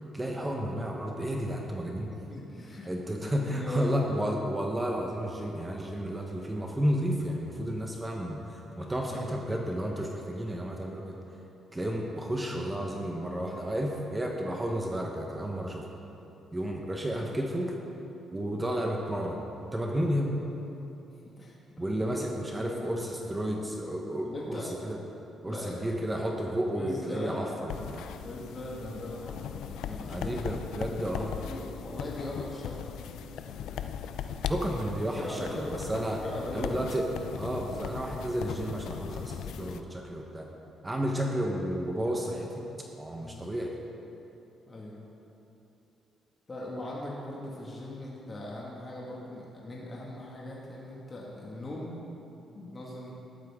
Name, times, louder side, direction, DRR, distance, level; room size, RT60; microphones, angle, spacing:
voice 1, 0.1-2.1 2.9-11.2 11.7-15.9 16.5-17.7 18.3-19.4 19.7-20.4 21.8-25.0 25.4-28.1 30.1-31.4 34.5-36.2 36.5-40.5 40.8-42.6 43.0-43.7, equal, 15° right, 0 dB, 1.2 m, -32 dB
voice 2, 2.1-2.9 3.2-4.2 9.0-9.3 19.2-19.3 21.2-22.2 22.5-23.1 24.2-24.7 25.4-26.0 26.5-27.6 28.2-30.6 31.3-33.6 35.1-35.9 36.1-37.0 41.2-41.3 43.2-43.6 44.7-45.0 46.5-51.9 52.5-53.1, left 1 dB, 30° left, -4 dB, 2.1 m, -40 dB
sound 1, 27.7-39.8, left 8 dB, 85° left, 0.5 m, -39 dB
13.5 x 11.5 x 3.8 m, 2.9 s
cardioid pair, 90°, 0 cm